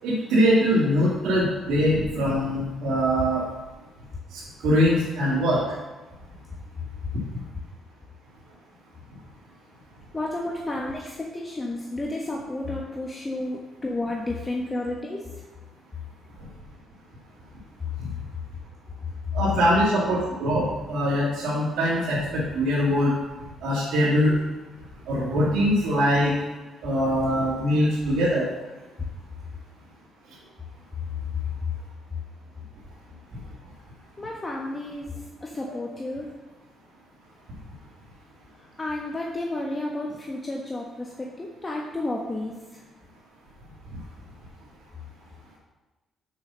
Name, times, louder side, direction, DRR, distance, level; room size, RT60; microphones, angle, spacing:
voice 1, 0.0-3.4 4.3-5.6 18.0-18.1 19.3-23.1 23.6-24.4 25.1-26.3 26.8-28.5 35.6-35.8, equal, 85° right, -8 dB, 2.2 m, -22 dB
voice 2, 10.1-15.4 34.2-36.3 38.8-42.8, left 2 dB, 25° left, -1 dB, 1.2 m, -32 dB
6.7 x 5.6 x 6.8 m, 1.1 s
cardioid pair, 90°, 0 cm